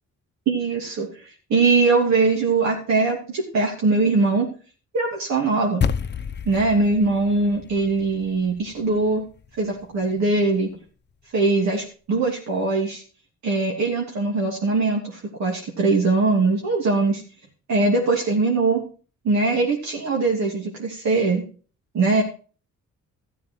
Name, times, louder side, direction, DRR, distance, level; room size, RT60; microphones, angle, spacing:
voice 1, 0.5-4.5 4.9-5.9 6.4-9.2 9.6-10.8 11.3-13.0 13.4-17.2 17.7-18.8 19.2-21.4 21.9-22.2, right 3 dB, 65° right, -1 dB, 3.0 m, -21 dB
sound 1, 5.8-10.3, left 7 dB, 35° left, 0.8 m, -31 dB
14.5 x 7.4 x 4.7 m, 0.38 s
cardioid pair, 90°, 30 cm